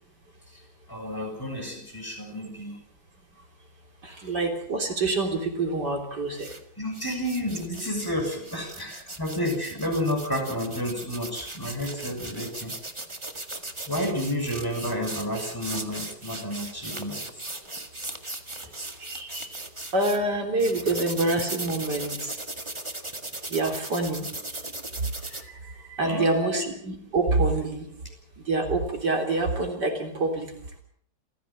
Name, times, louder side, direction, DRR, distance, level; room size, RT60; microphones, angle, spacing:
voice 1, 0.9-2.8 4.0-4.3 6.8-12.7 13.9-17.5 25.1-25.4 26.0-26.6, equal, 10° left, 2 dB, 7.3 m, -31 dB
voice 2, 4.2-6.5 19.0-19.5 19.9-22.4 23.5-24.3 25.9-27.9 28.5-30.5, right 2 dB, 65° right, 3 dB, 4.2 m, -26 dB
sound 1, 6.3-6.6 6.9-20.2 20.6-25.4, right 2 dB, 15° right, 1.8 m, -38 dB
28.5 x 16.0 x 7.5 m, 0.63 s
omnidirectional pair, 1.9 m